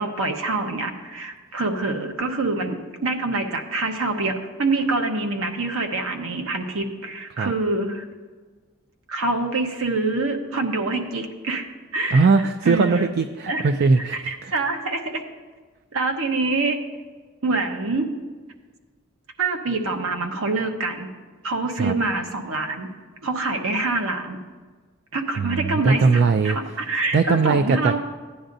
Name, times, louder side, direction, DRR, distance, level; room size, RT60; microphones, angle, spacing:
voice 1, 0.0-8.1 9.1-11.7 11.9-12.3 12.6-13.1 13.5-13.7 14.0-15.2 15.9-16.8 17.4-18.1 19.4-21.1 21.4-22.9 23.2-24.4 25.1-28.0, right 2 dB, 75° right, 4 dB, 1.1 m, -25 dB
voice 2, 12.1-14.5 21.8-22.0 25.4-26.8 27.1-28.0, right 4 dB, 50° right, 10 dB, 0.3 m, -20 dB
15.0 x 10.0 x 2.6 m, 1.4 s
head